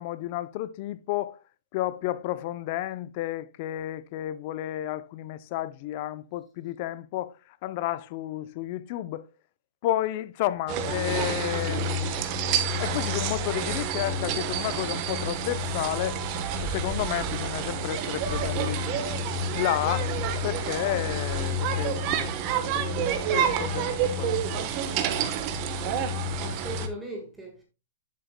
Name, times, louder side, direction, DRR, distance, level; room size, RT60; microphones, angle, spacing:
voice 1, 0.0-1.4 1.7-9.3 9.8-12.4 12.8-16.2 16.6-18.8 19.5-20.1 20.4-22.9 23.3-24.4, left 14 dB, 40° left, 0.5 m, -31 dB
sound 1, 10.7-26.9, right 4 dB, 35° right, 1.1 m, -28 dB
voice 2, 23.9-24.3 26.4-27.6, right 2 dB, 5° right, 1.6 m, -39 dB
10.5 x 7.5 x 2.2 m
hypercardioid pair, 150°, 0 cm